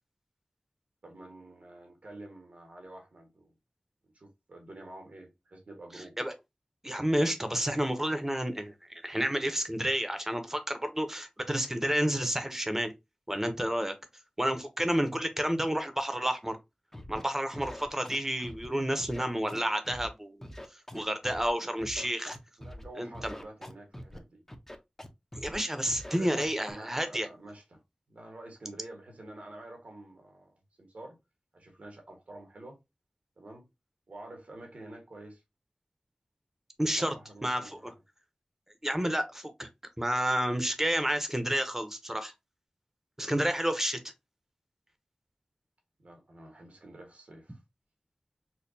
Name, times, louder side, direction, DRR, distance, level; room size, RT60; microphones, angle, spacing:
voice 1, 1.0-3.5 4.0-6.1 22.6-24.4 26.1-27.8 28.1-31.2 31.5-32.8 33.4-33.6 34.1-35.4 36.9-37.9 46.0-47.6, right 1 dB, 90° right, 1.4 m, -48 dB
voice 2, 5.9-6.3 6.8-12.9 13.3-13.9 14.4-16.6 17.1-22.4 23.0-23.4 25.4-27.3 36.8-37.1 37.4-37.9 38.8-39.7 40.0-42.3 43.2-44.0, equal, 15° right, 0.8 m, -30 dB
Scratching (performance technique), 16.9-17.2 17.5-18.7 19.0-20.1 20.4-21.5 21.8-22.8 23.1-24.2 24.5-25.1 25.3-25.6 25.9-26.7, equal, 15° left, 0.7 m, -44 dB
4.4 x 2.3 x 2.7 m
wide cardioid pair, 45°, 2 cm